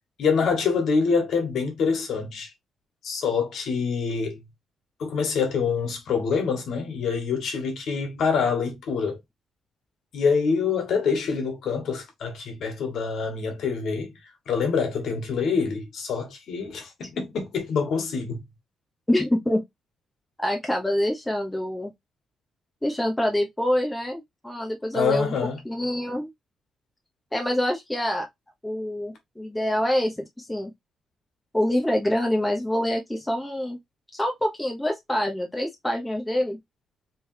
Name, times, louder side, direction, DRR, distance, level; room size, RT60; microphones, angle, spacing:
voice 1, 0.2-2.5 3.0-4.4 5.0-9.2 10.1-14.1 14.5-18.4 24.9-25.6, left 5 dB, 65° left, 1.5 m, -25 dB
voice 2, 19.1-19.6 20.4-21.9 22.8-25.3 25.7-26.3 27.3-28.3 28.6-30.7 31.5-33.8 34.1-36.6, left 1 dB, 5° left, 0.7 m, -26 dB
3.3 x 3.2 x 3.2 m
wide cardioid pair, 175°, 0 cm